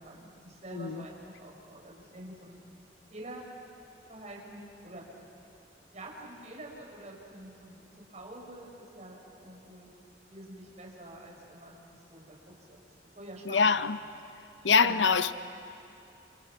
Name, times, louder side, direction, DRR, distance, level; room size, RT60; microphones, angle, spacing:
voice 1, 0.0-2.6 3.1-3.5 4.1-5.0 5.3-5.4 5.9-9.9 10.3-12.4 12.7-12.8 13.2-13.8 14.6-15.1, right 1 dB, 40° right, -1 dB, 5.2 m, -46 dB
voice 2, 0.7-1.0 13.5-14.0 14.6-15.3, left 5 dB, 90° left, 12 dB, 0.7 m, -24 dB
29.5 x 27.5 x 6.1 m, 2.7 s
head